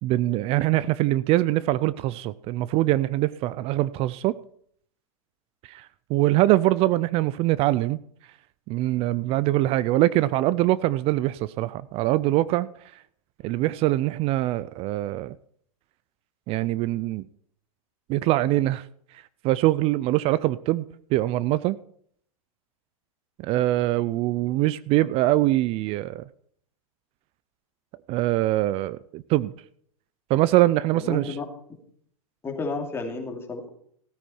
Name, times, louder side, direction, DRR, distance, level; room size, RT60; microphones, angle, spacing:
voice 1, 0.0-4.3 5.6-8.0 8.7-13.0 13.4-15.4 16.5-17.3 18.1-18.9 19.4-20.8 21.1-21.8 23.4-26.2 28.1-29.5 30.3-31.3, right 16 dB, 30° right, 0.4 m, -23 dB
voice 2, 30.9-31.4 32.4-33.7, left 3 dB, 15° left, 2.6 m, -32 dB
16.0 x 9.1 x 4.3 m
hypercardioid pair, 130°, 18 cm